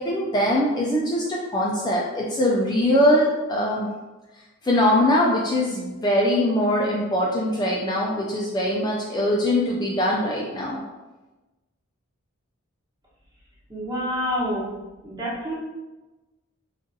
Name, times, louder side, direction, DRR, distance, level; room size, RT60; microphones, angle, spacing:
voice 1, 0.0-3.9 4.6-10.8, left 1 dB, 20° left, -4 dB, 0.3 m, -22 dB
voice 2, 13.7-14.7 15.0-15.5, equal, 20° right, -7 dB, 1.0 m, -27 dB
3.8 x 2.4 x 2.6 m, 1.1 s
head